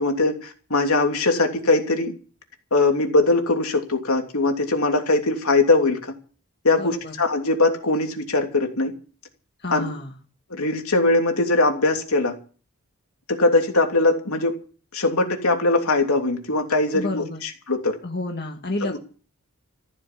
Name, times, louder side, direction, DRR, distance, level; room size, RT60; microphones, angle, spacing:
voice 1, 0.0-2.1 2.7-6.1 6.6-8.9 9.7-9.9 10.5-12.4 13.3-14.6 14.9-18.0 18.8-19.0, left 2 dB, 75° left, 4 dB, 3.0 m, -21 dB
voice 2, 6.8-7.1 9.6-10.2 16.9-17.4 18.0-19.0, left 2 dB, 45° left, 2 dB, 1.9 m, -30 dB
15.0 x 9.7 x 8.5 m, 0.39 s
head